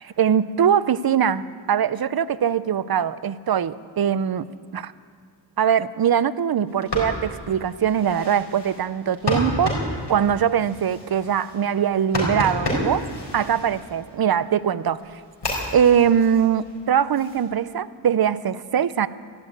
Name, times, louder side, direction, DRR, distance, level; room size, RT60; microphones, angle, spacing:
voice 1, 0.0-4.5 4.7-4.9 5.6-13.1 13.3-15.2 15.7-19.1, right 8 dB, 55° right, 16 dB, 0.6 m, -22 dB
sound 1, 6.7-14.3 14.8-17.4, left 1 dB, 70° left, 4.2 m, -31 dB
13.0 x 12.0 x 8.7 m, 2.1 s
wide cardioid pair, 75°, 43 cm